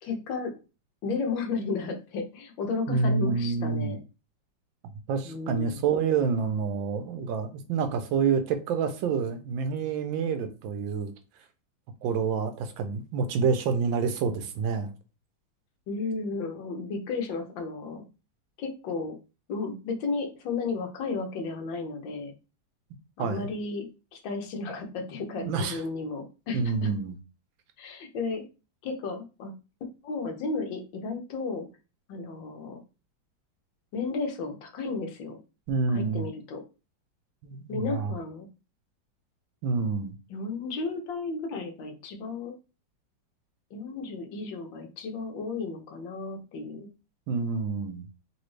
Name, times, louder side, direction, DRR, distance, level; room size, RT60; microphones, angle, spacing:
voice 1, 0.0-0.5 1.0-4.0 5.2-5.8 15.9-18.1 18.6-19.2 19.5-22.3 23.2-26.9 27.8-28.4 28.8-29.6 30.0-31.7 32.1-32.8 33.9-35.4 35.9-36.6 37.7-38.5 40.3-42.5 43.7-46.9, left 4 dB, 75° left, 1.5 m, -33 dB
voice 2, 2.9-3.9 5.1-11.1 12.0-14.9 23.2-23.5 25.4-25.8 26.5-27.1 35.7-36.3 37.4-38.1 39.6-40.2 47.3-48.0, right 5 dB, 80° right, 1.3 m, -28 dB
4.0 x 2.7 x 3.2 m
omnidirectional pair, 2.1 m